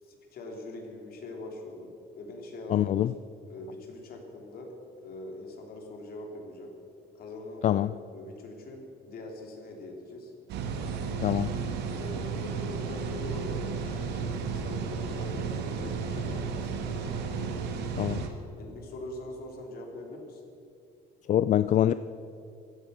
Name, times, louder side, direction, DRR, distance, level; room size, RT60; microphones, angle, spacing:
voice 1, 0.0-3.0 3.5-4.7 5.0-6.7 7.1-10.3 11.9-17.6 18.6-20.4, left 2 dB, 65° left, 2 dB, 3.4 m, -43 dB
voice 2, 2.7-3.1 7.6-7.9 11.2-11.5 18.0-18.2 21.3-21.9, left 11 dB, 45° left, 14 dB, 0.4 m, -24 dB
sound 1, 10.5-18.3, right 5 dB, 80° right, 1.8 m, -33 dB
16.0 x 12.0 x 6.9 m, 2.5 s
cardioid pair, 110°, 17 cm